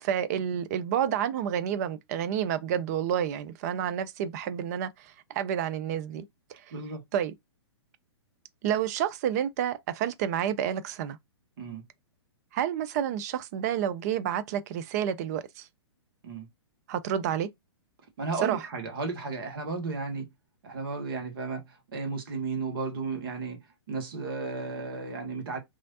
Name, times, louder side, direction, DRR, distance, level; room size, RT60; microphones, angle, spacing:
voice 1, 0.0-6.2 6.5-6.6 7.1-7.3 8.6-11.2 12.5-15.7 16.9-17.5 18.4-18.6, right 9 dB, 35° right, 0.4 m, -29 dB
voice 2, 6.7-7.0 11.6-11.8 16.2-16.5 18.2-20.3 20.6-23.6 23.9-25.6, right 4 dB, 55° right, 1.0 m, -34 dB
3.0 x 2.4 x 2.7 m
figure-of-eight pair, 120°, 14 cm